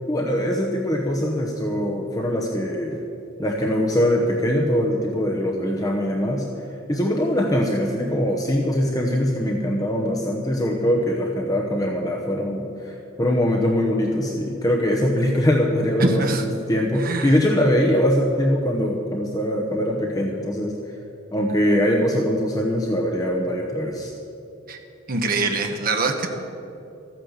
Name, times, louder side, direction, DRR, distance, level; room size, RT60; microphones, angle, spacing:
voice 1, 0.1-3.0 3.4-6.5 6.9-20.7 21.3-24.1, equal, 20° left, 0 dB, 0.9 m, -22 dB
voice 2, 16.0-16.4 17.0-17.3 24.7-24.8 25.1-26.3, right 3 dB, 50° right, 4 dB, 1.2 m, -23 dB
14.0 x 8.9 x 7.2 m, 2.8 s
head